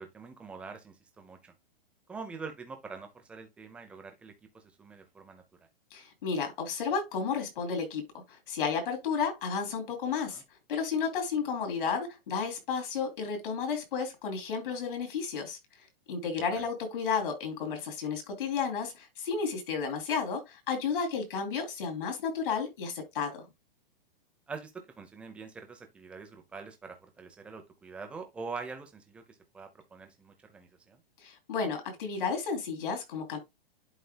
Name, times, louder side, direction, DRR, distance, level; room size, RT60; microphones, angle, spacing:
voice 1, 0.0-1.5 2.1-5.4 10.3-10.4 16.6-16.7 24.5-31.0, right 4 dB, 5° right, 0.5 m, -44 dB
voice 2, 5.9-10.4 10.7-15.6 16.1-23.4 31.2-33.4, left 5 dB, 60° left, 3.3 m, -32 dB
11.5 x 4.1 x 2.2 m
hypercardioid pair, 170°, 30 cm